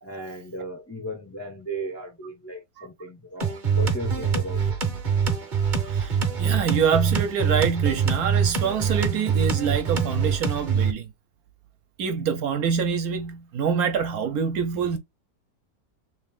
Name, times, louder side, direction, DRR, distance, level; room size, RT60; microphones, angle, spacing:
voice 1, 0.0-5.0, equal, 20° left, 0.4 m, -36 dB
sound 1, 3.4-10.9, right 6 dB, 40° right, 0.8 m, -24 dB
voice 2, 5.8-11.1 12.0-15.0, right 6 dB, 70° right, 1.1 m, -25 dB
3.7 x 2.5 x 3.5 m
omnidirectional pair, 1.8 m